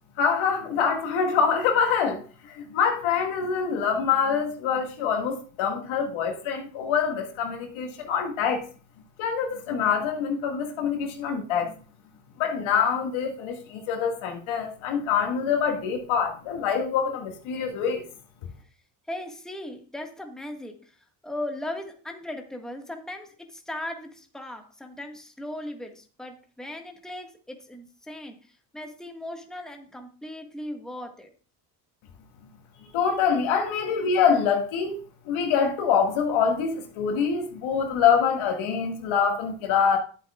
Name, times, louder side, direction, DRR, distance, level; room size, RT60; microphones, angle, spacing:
voice 1, 0.2-8.7 9.2-11.7 12.4-18.0 32.9-35.0 35.2-40.0, left 6 dB, 70° left, 1.9 m, -25 dB
voice 2, 19.1-21.0 21.2-31.3, left 1 dB, ahead, 1.6 m, -38 dB
11.0 x 8.0 x 2.4 m
supercardioid pair, 75°, 49 cm